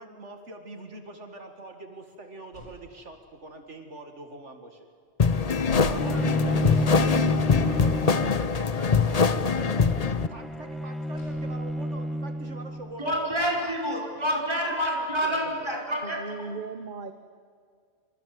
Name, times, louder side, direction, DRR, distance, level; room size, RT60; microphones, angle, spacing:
voice 1, 0.0-4.9 5.7-13.2 13.6-14.4 14.7-15.7, right 2 dB, 70° right, 5 dB, 2.3 m, -43 dB
sound 1, 2.5-3.3 5.6-7.2 11.1-12.1, left 1 dB, 80° left, 7.4 m, -41 dB
sound 2, 5.2-10.3, left 5 dB, 35° left, 0.8 m, -23 dB
Bowed string instrument, 6.0-13.0, equal, ahead, 1.0 m, -31 dB
voice 2, 13.0-16.5, equal, 20° right, 0 dB, 5.4 m, -28 dB
voice 3, 16.0-17.1, right 4 dB, 45° right, 9 dB, 1.2 m, -37 dB
27.5 x 26.0 x 7.7 m, 2.1 s
omnidirectional pair, 1.3 m